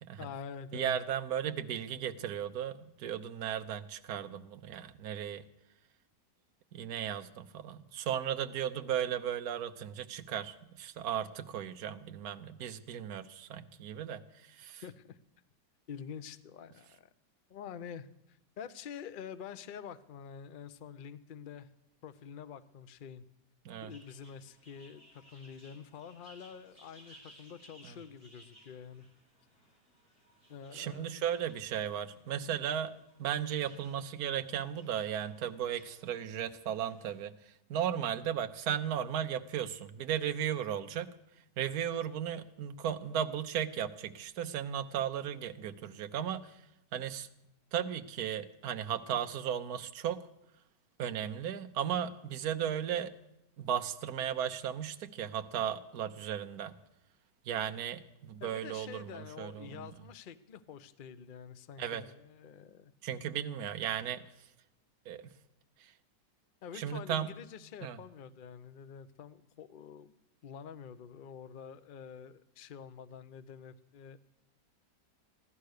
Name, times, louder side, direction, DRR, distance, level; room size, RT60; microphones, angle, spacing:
voice 1, 0.2-1.0 14.8-15.2 15.9-17.1 17.5-21.7 22.0-23.2 23.8-29.0 30.5-31.1 58.4-62.9 66.6-70.1 70.4-74.2, left 7 dB, 50° left, 12 dB, 0.6 m, -47 dB
voice 2, 0.7-5.4 6.7-14.8 23.6-23.9 27.8-28.0 30.7-41.1 41.6-46.6 46.9-47.3 47.7-50.3 51.0-53.1 53.6-56.7 57.4-59.7 61.8-62.0 63.0-64.2 65.1-65.3 65.8-65.9 66.7-67.3 67.8-68.0, right 9 dB, 65° right, 7 dB, 1.3 m, -36 dB
sound 1, 23.9-37.3, right 1 dB, 30° left, 4.8 m, -62 dB
15.5 x 12.5 x 6.5 m, 0.84 s
omnidirectional pair, 1.9 m